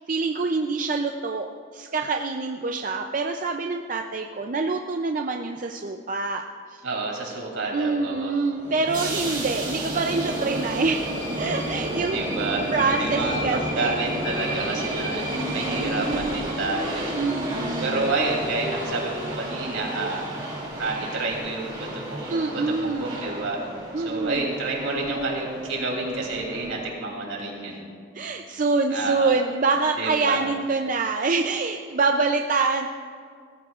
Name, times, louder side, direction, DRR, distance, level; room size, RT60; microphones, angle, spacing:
voice 1, 0.1-6.8 7.7-11.1 11.4-12.2 12.7-14.0 17.2-18.1 22.3-23.2 23.9-24.4 28.1-32.9, right 3 dB, 40° right, 3 dB, 0.5 m, -26 dB
voice 2, 6.8-8.4 12.1-12.6 13.0-17.2 17.8-20.2 20.8-23.6 24.0-27.8 28.9-29.3 30.0-30.4, right 3 dB, 75° right, -1 dB, 3.1 m, -29 dB
sound 1, 8.5-26.9, right 1 dB, 20° right, 2.6 m, -31 dB
20.0 x 14.0 x 2.5 m, 2.1 s
head